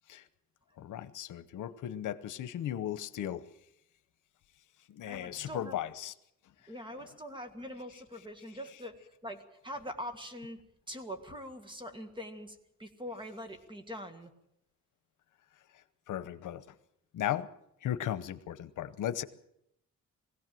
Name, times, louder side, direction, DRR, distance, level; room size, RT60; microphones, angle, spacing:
voice 1, 0.8-3.4 4.9-6.1 15.7-16.7 17.1-17.5 17.8-19.2, left 11 dB, 90° left, 13 dB, 1.0 m, -36 dB
voice 2, 5.1-5.8 6.7-10.6 10.9-14.3, equal, 15° right, 8 dB, 1.8 m, -43 dB
21.0 x 16.5 x 7.7 m, 0.79 s
wide cardioid pair, 145°, 30 cm